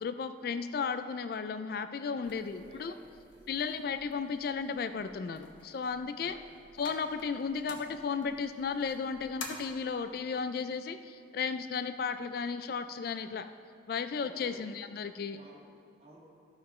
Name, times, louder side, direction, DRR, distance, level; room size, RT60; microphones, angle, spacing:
voice 1, 0.0-2.9 3.5-6.4 6.8-13.5 13.9-15.4, left 5 dB, 50° left, 10 dB, 0.3 m, -34 dB
voice 2, 2.1-3.7 6.1-6.5 7.3-7.4 14.2-14.6 15.3-16.2, right 1 dB, 35° right, -4 dB, 1.9 m, -54 dB
sound 1, 2.2-9.5, left 4 dB, 85° left, 1.3 m, -51 dB
14.0 x 5.7 x 4.3 m, 2.5 s
head